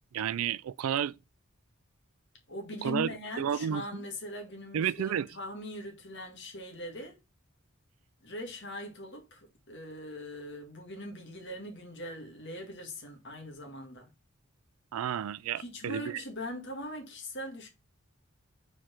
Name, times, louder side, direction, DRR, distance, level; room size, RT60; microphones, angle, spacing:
voice 1, 0.1-1.1 2.8-3.1 3.4-4.0 4.7-5.3 14.9-16.2, right 8 dB, 85° right, 0.3 m, -31 dB
voice 2, 2.5-7.2 8.2-14.1 15.6-17.7, left 1 dB, 55° left, 1.8 m, -41 dB
4.7 x 4.4 x 4.5 m
head